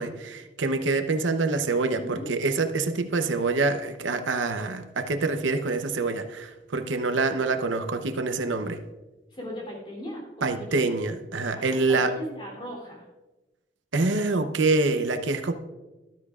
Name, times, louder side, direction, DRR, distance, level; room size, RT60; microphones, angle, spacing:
voice 1, 0.0-8.8 10.4-12.1 13.9-15.5, right 3 dB, 90° right, 7 dB, 0.8 m, -26 dB
voice 2, 2.0-2.3 9.3-11.0 11.5-13.1, equal, 25° left, -2 dB, 3.1 m, -38 dB
13.0 x 12.5 x 2.4 m, 1.1 s
head